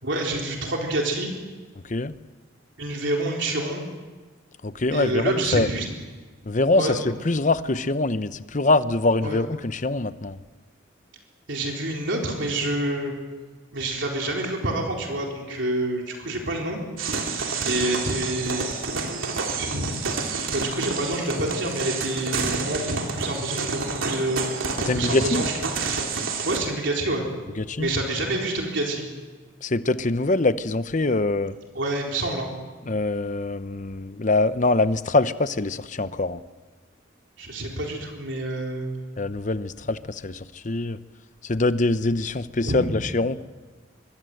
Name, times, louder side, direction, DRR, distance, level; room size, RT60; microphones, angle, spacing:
voice 1, 0.0-1.3 2.8-3.8 4.9-5.9 6.8-7.0 9.2-9.4 11.5-13.1 13.7-16.8 17.6-25.7 26.4-27.2 27.8-29.0 31.7-32.5 37.4-38.9 42.6-43.1, right 1 dB, 65° right, 0 dB, 4.1 m, -28 dB
voice 2, 4.6-5.7 6.4-10.4 24.9-25.4 27.6-27.9 29.6-31.5 32.9-36.4 39.2-41.0 41.4-43.4, left 2 dB, 40° left, 13 dB, 0.8 m, -24 dB
sound 1, 17.0-26.6, right 4 dB, 90° right, 3.0 m, -29 dB
25.0 x 23.5 x 7.9 m, 1.4 s
head